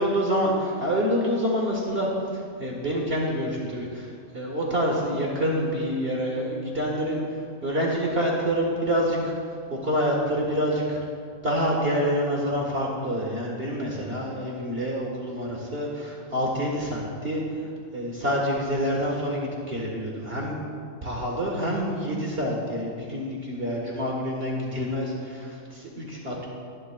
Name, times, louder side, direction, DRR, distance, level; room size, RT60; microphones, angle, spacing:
voice 1, 0.0-9.3 9.7-11.0 11.4-20.6 21.0-26.5, equal, 45° right, -3 dB, 1.8 m, -27 dB
22.0 x 11.0 x 2.4 m, 2.2 s
omnidirectional pair, 1.4 m